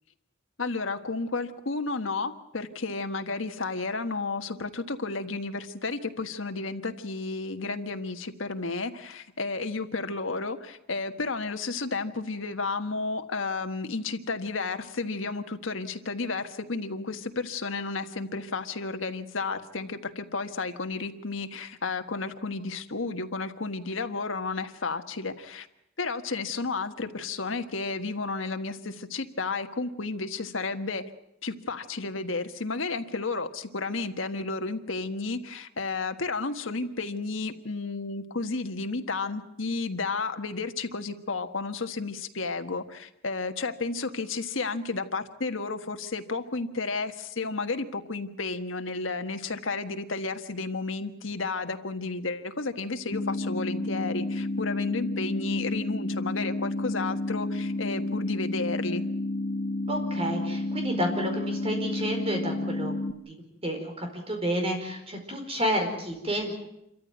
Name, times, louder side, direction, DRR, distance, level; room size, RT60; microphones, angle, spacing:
voice 1, 0.6-25.7 26.0-31.0 31.4-59.0, left 3 dB, 85° left, 7 dB, 1.5 m, -32 dB
sound 1, 53.1-63.1, left 2 dB, 50° left, 1.3 m, -30 dB
voice 2, 59.9-62.9 63.3-63.4 63.6-66.6, equal, 30° right, 3 dB, 4.8 m, -30 dB
27.5 x 14.0 x 9.3 m, 0.83 s
head